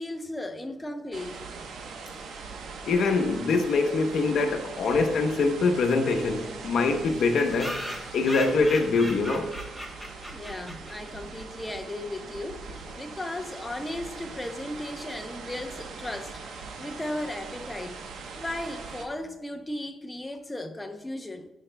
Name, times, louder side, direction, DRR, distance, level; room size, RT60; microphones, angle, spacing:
voice 1, 0.0-1.4 10.3-18.0 18.4-21.5, left 1 dB, 15° left, 0.7 m, -36 dB
sound 1, 1.1-19.1, right 4 dB, 75° right, 0.9 m, -41 dB
voice 2, 2.9-7.8 8.1-9.5, left 3 dB, 65° left, 0.8 m, -24 dB
sound 2, 5.4-5.5 5.7-5.8 6.1-6.2 6.4-6.5 7.1-11.3, equal, 5° right, 1.0 m, -39 dB
14.5 x 4.9 x 2.2 m
cardioid pair, 105°, 0 cm